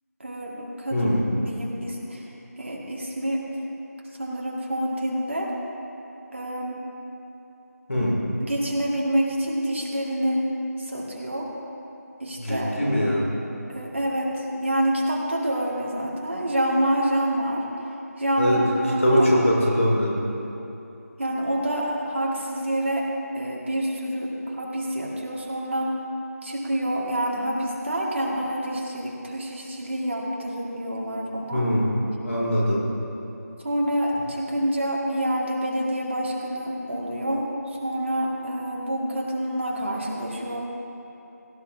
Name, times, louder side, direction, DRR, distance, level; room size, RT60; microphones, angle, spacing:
voice 1, 0.2-2.3 2.6-3.5 4.2-5.5 6.3-6.9 7.9-8.0 8.4-10.5 10.8-11.5 12.2-12.7 13.7-17.6 18.2-19.3 21.2-23.1 23.3-26.0 26.4-31.7 33.6-37.5 37.8-40.6, right 1 dB, 45° right, -3 dB, 2.1 m, -27 dB
voice 2, 0.9-1.2 7.9-8.2 12.4-13.2 18.4-18.6 19.0-20.2 31.5-31.9 32.2-32.8, equal, 55° left, -4 dB, 2.8 m, -22 dB
17.0 x 14.0 x 2.8 m, 3.0 s
figure-of-eight pair, 170°, 9 cm